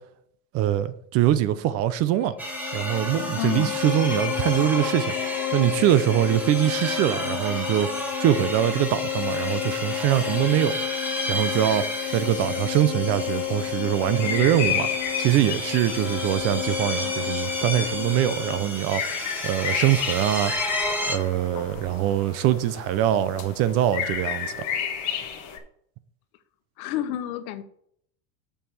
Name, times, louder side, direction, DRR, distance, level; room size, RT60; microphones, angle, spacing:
voice 1, 0.5-2.3 2.7-5.1 5.5-10.8 11.3-11.8 12.1-14.9 15.2-19.0 19.4-20.5 21.1-24.5, right 12 dB, 35° right, 0.5 m, -23 dB
Bowed string instrument, 2.2-18.8, left 21 dB, 70° left, 0.6 m, -32 dB
sound 1, 2.4-21.2, equal, 5° right, 1.3 m, -32 dB
voice 2, 3.4-3.7 26.8-27.6, left 12 dB, 85° left, 1.2 m, -29 dB
sound 2, 13.2-25.6, left 8 dB, 40° left, 1.4 m, -33 dB
6.9 x 5.7 x 6.1 m
cardioid pair, 160°, 42 cm